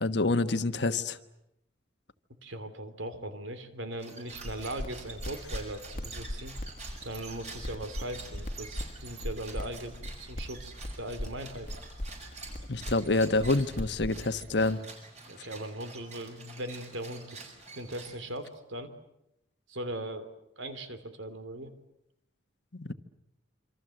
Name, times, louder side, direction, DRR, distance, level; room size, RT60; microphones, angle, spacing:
voice 1, 0.0-1.2 12.7-14.8 15.4-15.5 22.7-22.9, left 2 dB, 60° left, 11 dB, 1.3 m, -27 dB
voice 2, 2.4-6.5 7.0-11.7 15.3-18.9 19.7-20.3 20.6-21.7, right 1 dB, 80° right, 10 dB, 3.1 m, -39 dB
sound 1, 3.9-18.5, right 3 dB, 35° right, 6.1 m, -48 dB
sound 2, 4.3-14.7, left 1 dB, 40° left, 1.5 m, -40 dB
27.5 x 26.0 x 7.8 m, 0.82 s
head